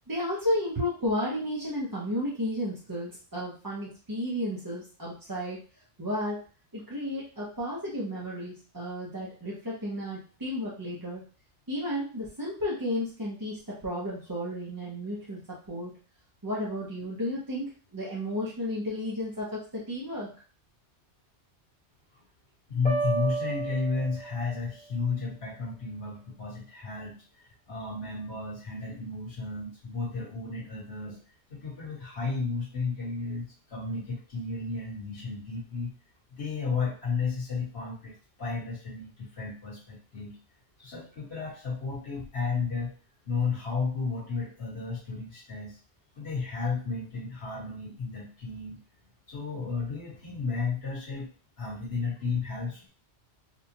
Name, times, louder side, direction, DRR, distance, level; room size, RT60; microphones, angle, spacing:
voice 1, 0.1-5.6 6.0-6.4 6.7-11.2 11.7-15.9 16.4-20.3, left 1 dB, 20° right, -7 dB, 0.7 m, -33 dB
voice 2, 22.7-31.2 31.5-35.9 36.3-40.4 40.8-42.9 43.3-45.8 46.2-48.8 49.3-51.3 51.6-52.9, left 4 dB, 60° left, -6 dB, 2.0 m, -33 dB
sound 1, 22.8-24.7, right 4 dB, 10° left, 1.2 m, -32 dB
4.3 x 2.4 x 2.8 m, 0.38 s
omnidirectional pair, 1.2 m